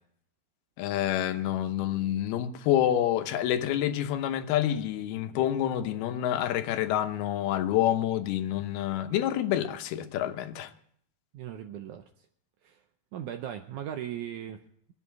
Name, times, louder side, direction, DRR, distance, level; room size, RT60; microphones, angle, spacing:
voice 1, 0.8-10.7, left 11 dB, 85° left, 2.9 m, -28 dB
voice 2, 11.3-12.3 12.6-12.8 13.1-14.6, right 10 dB, 80° right, 1.7 m, -38 dB
23.5 x 8.2 x 4.6 m
omnidirectional pair, 4.4 m